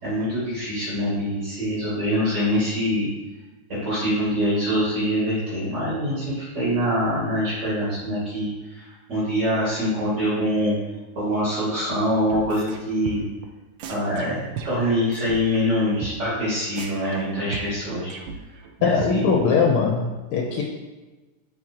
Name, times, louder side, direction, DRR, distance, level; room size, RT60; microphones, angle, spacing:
voice 1, 0.0-3.1 3.8-10.7 11.1-13.2 13.9-18.1 18.8-19.4, equal, 50° right, -9 dB, 2.8 m, -24 dB
sound 1, 12.3-12.8 13.1-13.5 13.8-15.4 15.7-15.8 16.0-16.1 16.4-16.5 16.8-18.7 19.0-19.1, right 6 dB, 70° right, 1.3 m, -36 dB
voice 2, 18.8-20.6, left 5 dB, 85° left, 0 dB, 1.7 m, -21 dB
9.4 x 4.5 x 2.9 m, 1.2 s
omnidirectional pair, 2.4 m